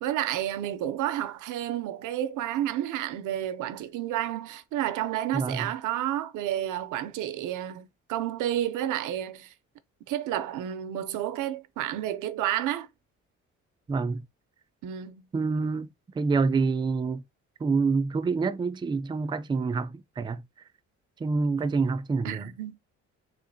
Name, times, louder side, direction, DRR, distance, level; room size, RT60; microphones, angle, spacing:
voice 1, 0.0-9.5 10.0-12.9 14.8-15.2 22.2-22.8, right 12 dB, 90° right, 0.6 m, -30 dB
voice 2, 5.3-5.7 13.9-14.2 15.3-15.9 16.1-17.2 17.6-20.4 21.2-22.4, right 4 dB, 15° right, 0.3 m, -27 dB
3.5 x 2.5 x 2.6 m
cardioid pair, 90°, 30 cm